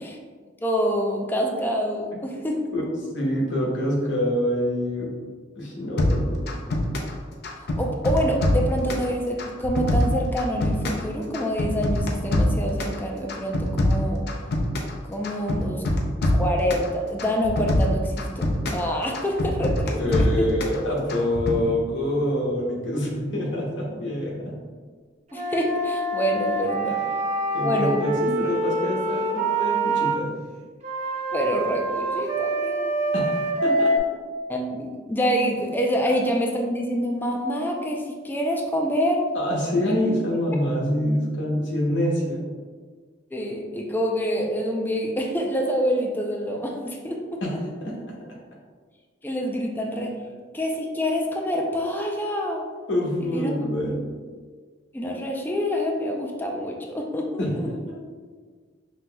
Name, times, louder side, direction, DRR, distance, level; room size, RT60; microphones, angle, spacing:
voice 1, 0.6-2.6 7.8-14.3 15.1-15.8 16.3-20.2 25.3-27.0 27.6-28.0 31.3-33.0 34.5-39.2 43.3-47.4 49.2-50.2 50.5-52.7 53.3-53.5 54.9-57.7, equal, 10° left, 0 dB, 0.4 m, -26 dB
voice 2, 3.1-5.1 5.5-6.5 20.0-24.6 26.9-27.0 27.5-30.3 33.1-33.9 39.3-42.4 47.4-47.5 47.8-47.9 52.9-54.0 57.4-58.0, left 1 dB, 80° left, -3 dB, 0.9 m, -26 dB
sound 1, 6.0-7.2 7.4-9.1 9.4-11.1 11.3-13.0 13.3-15.0 15.2-16.9 17.2-18.8 19.1-20.8 21.1-21.6, left 1 dB, 60° left, 0.6 m, -24 dB
Wind instrument woodwind instrument, 25.3-30.2 30.8-34.0, right 2 dB, 40° right, 0.5 m, -26 dB
5.4 x 3.0 x 2.2 m, 1.5 s
head